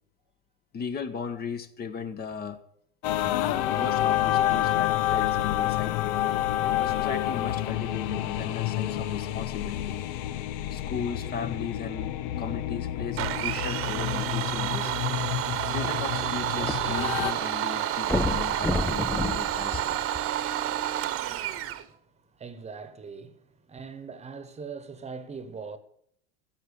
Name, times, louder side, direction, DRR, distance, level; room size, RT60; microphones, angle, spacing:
voice 1, 0.7-2.6 3.1-6.5 6.8-10.0 10.7-14.9 15.5-20.0, left 6 dB, 30° left, 1.3 m, -37 dB
sound 1, 3.0-17.3, left 12 dB, 65° left, 1.0 m, -28 dB
Domestic sounds home sounds, 13.2-21.8, right 12 dB, 45° right, 1.2 m, -29 dB
sound 2, 15.8-17.2 17.5-17.6 18.0-20.6 21.3-21.4, left 2 dB, 5° left, 0.5 m, -31 dB
voice 2, 21.9-25.8, right 5 dB, 20° right, 1.3 m, -41 dB
15.0 x 7.6 x 8.5 m
supercardioid pair, 110°, 31 cm